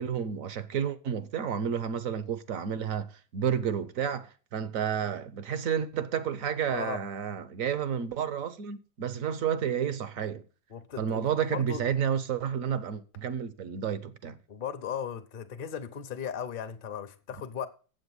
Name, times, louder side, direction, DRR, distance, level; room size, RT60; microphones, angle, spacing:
voice 1, 0.0-10.4 11.0-14.4, right 8 dB, 55° right, 1.0 m, -31 dB
voice 2, 6.7-7.0 10.7-11.8 14.5-17.7, left 8 dB, 40° left, 0.8 m, -37 dB
7.9 x 7.7 x 8.1 m
omnidirectional pair, 2.0 m